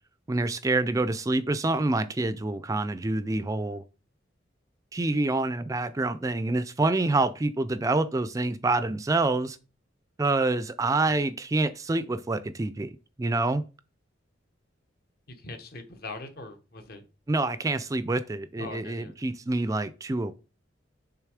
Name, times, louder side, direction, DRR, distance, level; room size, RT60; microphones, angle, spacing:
voice 1, 0.3-3.8 4.9-9.6 10.2-12.9 13.2-13.6 17.3-20.3, right 2 dB, 15° right, 0.3 m, -27 dB
voice 2, 15.3-17.0 18.6-19.2, left 2 dB, 55° left, 1.0 m, -41 dB
6.6 x 3.4 x 4.8 m
head